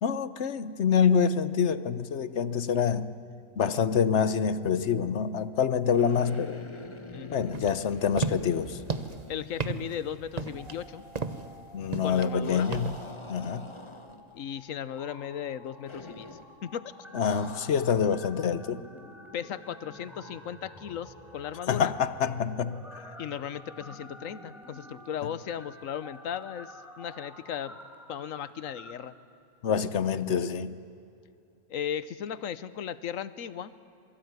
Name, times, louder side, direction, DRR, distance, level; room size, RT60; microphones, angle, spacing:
voice 1, 0.0-3.1 3.6-6.6 7.3-8.8 11.7-12.9 13.3-13.7 17.1-18.8 21.7-23.1 25.2-25.3 29.6-30.7, left 7 dB, 60° left, 14 dB, 1.1 m, -26 dB
sound 1, 5.9-10.0 10.3-10.4 12.4-14.4 15.9-16.5 17.2-18.1, left 2 dB, 25° left, 1.2 m, -45 dB
sound 2, 7.5-13.1, right 4 dB, 35° right, 1.0 m, -35 dB
voice 2, 9.3-11.0 12.0-12.7 14.3-16.3 16.6-16.9 19.3-21.9 23.2-27.8 28.1-29.1 31.7-33.7, left 9 dB, 80° left, 15 dB, 1.3 m, -36 dB
sound 3, 10.4-11.8 12.1-12.4 12.9-28.9, equal, ahead, 3.6 m, -50 dB
27.0 x 23.0 x 9.6 m, 2.6 s
omnidirectional pair, 1.4 m